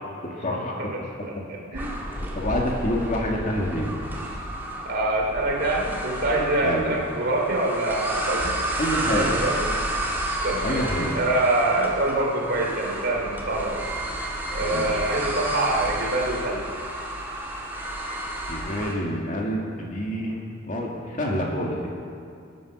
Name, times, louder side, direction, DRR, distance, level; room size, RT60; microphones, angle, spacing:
voice 1, 0.2-0.8 2.3-3.9 6.6-6.9 8.8-9.3 10.6-11.2 14.6-15.0 18.5-21.9, equal, 35° left, -1 dB, 2.0 m, -27 dB
voice 2, 0.9-2.0 4.8-8.5 9.1-9.7 10.4-10.8 11.1-13.8 14.5-16.6, right 2 dB, 50° right, -1 dB, 3.0 m, -25 dB
sound 1, 1.7-18.9, right 1 dB, 10° right, 1.7 m, -31 dB
20.5 x 9.3 x 6.1 m, 2.4 s
head